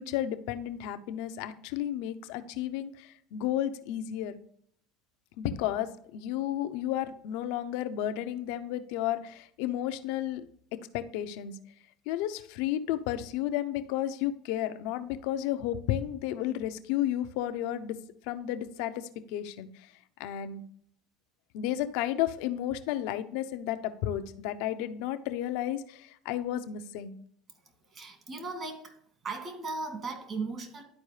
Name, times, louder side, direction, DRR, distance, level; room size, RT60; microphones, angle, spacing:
voice 1, 0.0-4.4 5.4-10.4 10.7-11.6 12.1-18.0 18.2-19.9 20.2-20.6 21.5-27.2, left 12 dB, 75° left, 9 dB, 0.6 m, -32 dB
voice 2, 27.9-28.9 29.2-30.8, right 3 dB, 40° right, 5 dB, 2.0 m, -37 dB
11.5 x 4.5 x 3.2 m, 0.65 s
supercardioid pair, 115°, 0 cm